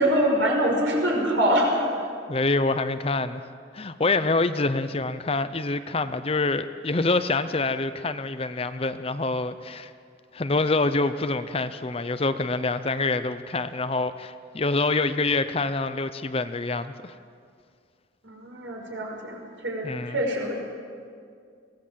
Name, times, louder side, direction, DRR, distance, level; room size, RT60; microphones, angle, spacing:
voice 1, 0.0-2.0 18.2-20.5, equal, 75° right, 0 dB, 5.6 m, -24 dB
voice 2, 2.3-3.4 3.7-9.9 10.3-17.1 19.8-20.2, left 3 dB, 30° left, 11 dB, 0.6 m, -26 dB
23.5 x 18.0 x 7.6 m, 2.2 s
head